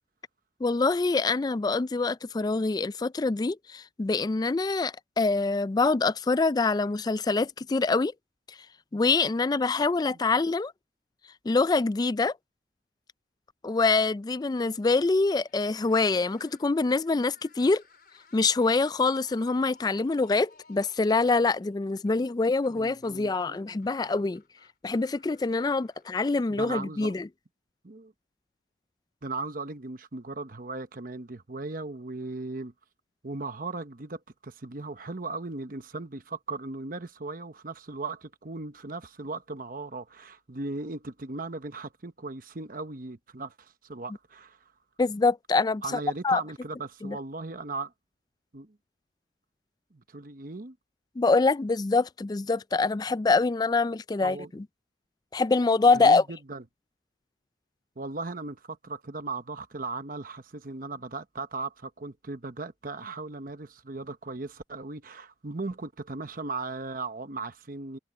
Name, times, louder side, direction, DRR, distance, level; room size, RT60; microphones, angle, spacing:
voice 1, 0.6-8.1 8.9-10.7 11.5-12.3 13.6-17.8 18.3-24.4 24.8-27.3 45.0-46.4 47.0-47.2 51.2-54.4 55.3-56.2, left 3 dB, 20° left, 0.3 m, -25 dB
sound 1, 15.4-26.7, left 4 dB, 55° left, 4.1 m, -60 dB
voice 2, 22.7-23.8 26.5-27.1 27.8-28.1 29.2-32.7 33.2-44.7 45.8-47.9 48.5-48.8 49.9-50.8 54.2-54.5 55.9-56.6 58.0-68.0, right 3 dB, 50° right, 0.9 m, -37 dB
head